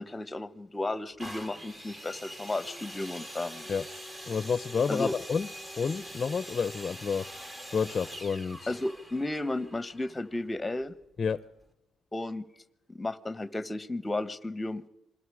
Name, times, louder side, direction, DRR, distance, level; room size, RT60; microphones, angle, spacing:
voice 1, 0.0-3.7 4.9-5.2 8.7-10.9 12.1-12.4 13.0-14.9, left 2 dB, 15° left, 16 dB, 1.1 m, -33 dB
sound 1, 1.2-10.9 11.6-11.7, equal, 20° right, 2.1 m, -44 dB
voice 2, 4.3-5.5 5.8-7.2 7.7-8.7 11.2-11.4, left 5 dB, 35° left, 16 dB, 0.7 m, -29 dB
27.0 x 21.5 x 4.9 m, 0.88 s
cardioid pair, 90°, 0 cm